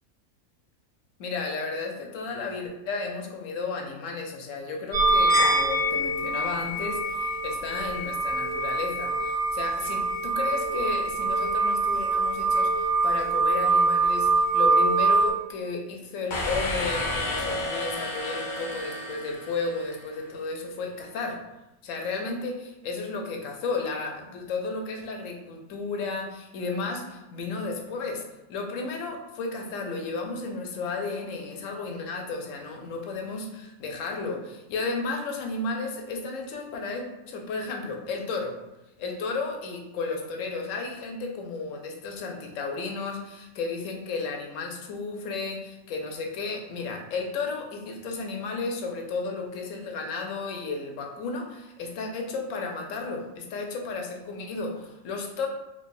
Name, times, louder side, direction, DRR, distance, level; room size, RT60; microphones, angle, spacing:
voice 1, 1.2-21.4 21.8-28.2 28.5-38.6 39.0-55.5, left 3 dB, 70° left, 3 dB, 0.9 m, -33 dB
sound 1, 4.9-15.3, right 2 dB, 60° right, 1.7 m, -24 dB
sound 2, 16.3-20.1, left 2 dB, 50° left, 0.6 m, -31 dB
4.5 x 2.4 x 2.6 m, 0.97 s
omnidirectional pair, 1.4 m